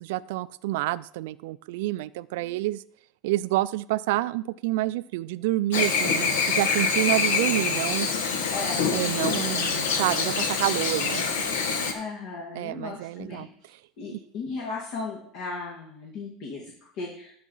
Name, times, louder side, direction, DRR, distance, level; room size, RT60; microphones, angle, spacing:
voice 1, 0.0-2.8 3.2-6.3 6.5-8.1 8.9-11.6 12.5-13.5, right 17 dB, 80° right, 15 dB, 0.3 m, -28 dB
Chirp tweet / Buzz, 5.7-11.9, left 5 dB, 90° left, 1.3 m, -25 dB
voice 2, 8.5-8.9 9.3-9.7 11.9-13.5 14.0-17.4, left 3 dB, 60° left, -2 dB, 2.2 m, -36 dB
12.0 x 4.8 x 5.5 m, 0.64 s
supercardioid pair, 140°, 0 cm